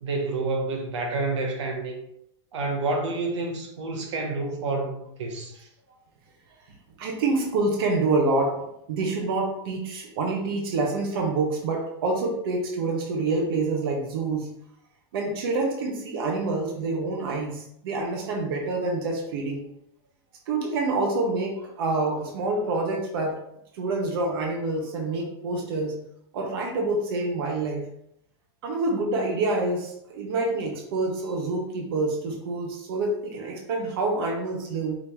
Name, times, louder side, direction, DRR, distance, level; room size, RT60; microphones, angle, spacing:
voice 1, 0.0-2.0 2.5-5.7, right 3 dB, 85° right, 1.1 m, -29 dB
voice 2, 7.0-14.5 15.1-19.6 20.5-23.4 23.7-26.0 26.3-27.9 28.6-35.0, right 3 dB, 55° right, 1.0 m, -27 dB
5.0 x 2.9 x 3.5 m
supercardioid pair, 170°, 15 cm